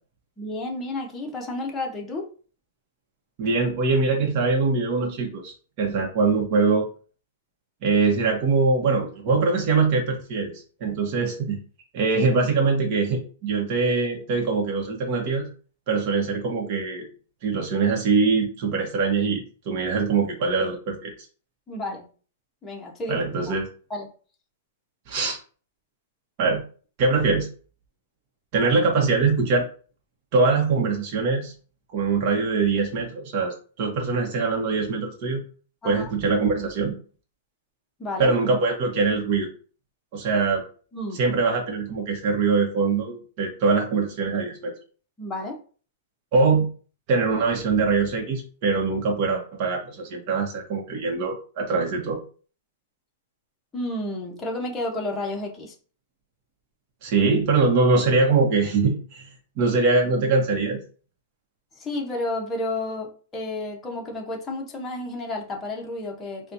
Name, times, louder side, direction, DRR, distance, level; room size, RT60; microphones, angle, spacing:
voice 1, 0.4-2.3 21.7-22.1 22.6-23.2 23.9-24.1 35.8-36.1 38.0-38.3 40.9-41.2 45.2-45.6 53.7-55.7 61.8-66.5, left 2 dB, 15° left, -1 dB, 0.8 m, -31 dB
voice 2, 3.4-6.8 7.8-10.5 10.8-11.6 11.9-15.5 15.9-17.1 17.4-21.1 23.1-23.7 25.1-25.4 26.4-26.6 27.0-27.5 28.5-29.7 30.3-31.5 31.9-35.4 35.8-37.0 38.2-39.5 40.1-40.6 41.1-44.7 46.3-46.7 47.1-52.2 57.0-59.3 59.6-60.8, right 4 dB, 45° right, 0 dB, 0.9 m, -23 dB
4.1 x 2.2 x 2.6 m, 0.40 s
hypercardioid pair, 145°, 0 cm